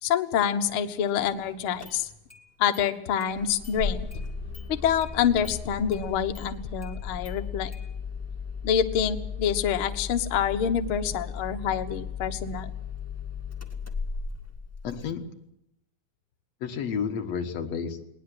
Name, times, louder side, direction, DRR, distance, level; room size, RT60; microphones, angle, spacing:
voice 1, 0.0-2.1 2.6-4.1 4.7-7.7 8.6-12.7, left 8 dB, 75° left, 6 dB, 1.2 m, -26 dB
Engine starting, 1.3-1.4 1.8-2.4 2.7-2.8 3.2-15.1, left 5 dB, 15° left, 0.5 m, -36 dB
voice 2, 14.8-15.2 16.6-18.0, left 6 dB, 55° left, 5 dB, 2.2 m, -31 dB
20.5 x 19.5 x 7.8 m, 0.81 s
omnidirectional pair, 4.4 m